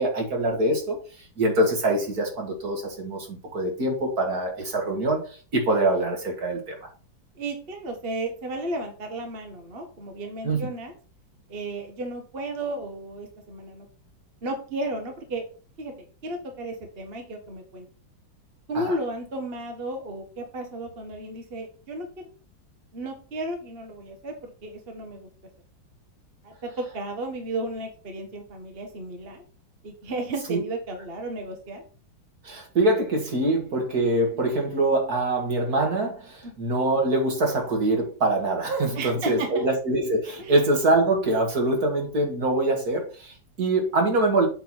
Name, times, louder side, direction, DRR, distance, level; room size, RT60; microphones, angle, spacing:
voice 1, 0.0-6.9 10.4-10.7 18.7-19.0 30.5-30.6 32.4-44.5, right 2 dB, 50° right, 1 dB, 2.4 m, -24 dB
voice 2, 7.4-11.0 11.5-13.9 14.4-15.4 15.8-15.9 16.2-17.9 18.7-22.3 22.9-25.3 26.4-29.4 29.8-31.8 36.4-36.5 38.9-39.6 40.4-40.6, right 2 dB, 35° right, 3 dB, 1.3 m, -33 dB
7.8 x 3.6 x 6.1 m, 0.39 s
omnidirectional pair, 2.1 m